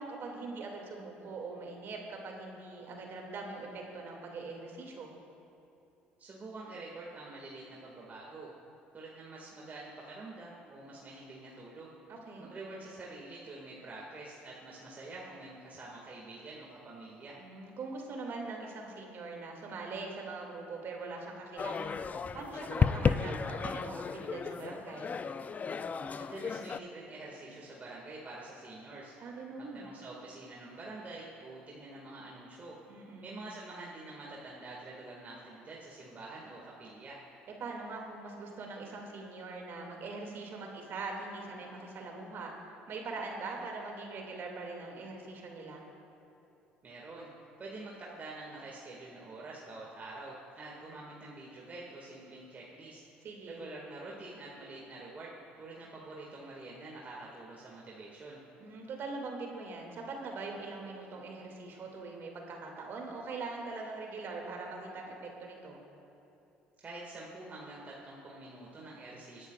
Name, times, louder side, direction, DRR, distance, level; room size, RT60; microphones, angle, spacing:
voice 1, 0.0-5.1 12.1-12.5 17.4-22.0 22.3-25.1 29.2-29.9 32.9-33.4 37.6-42.5 42.9-45.8 53.2-53.6 58.6-65.8, right 3 dB, 55° right, 0 dB, 2.4 m, -42 dB
voice 2, 6.2-8.5 8.9-12.0 12.4-17.4 26.2-29.2 29.6-32.8 33.2-37.2 46.8-47.3 47.6-53.0 53.5-58.4 66.8-69.5, right 2 dB, 35° right, -4 dB, 2.1 m, -46 dB
sound 1, 21.6-26.8, left 5 dB, 35° left, 0.4 m, -33 dB
22.0 x 10.5 x 2.5 m, 3.0 s
hypercardioid pair, 65°, 5 cm